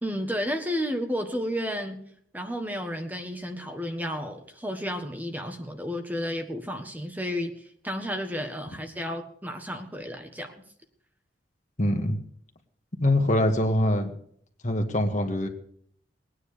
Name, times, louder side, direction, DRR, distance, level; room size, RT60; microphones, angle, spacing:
voice 1, 0.0-2.0 2.3-10.5, equal, 10° right, 4 dB, 1.5 m, -32 dB
voice 2, 11.8-12.2 13.0-14.1 14.6-15.5, left 1 dB, 45° left, 4 dB, 2.0 m, -23 dB
20.5 x 9.8 x 6.8 m, 0.63 s
head